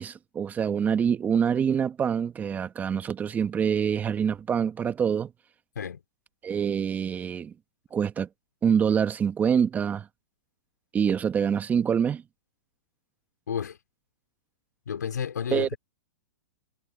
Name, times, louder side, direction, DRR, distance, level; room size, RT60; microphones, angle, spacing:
voice 1, 0.0-5.3 6.4-7.5 7.9-8.3 8.6-10.1 10.9-12.2 15.5-15.7, right 7 dB, 15° right, 1.6 m, -25 dB
voice 2, 13.5-13.8 14.9-15.8, left 7 dB, 90° left, 4.8 m, -31 dB
hypercardioid pair, 135°, 9 cm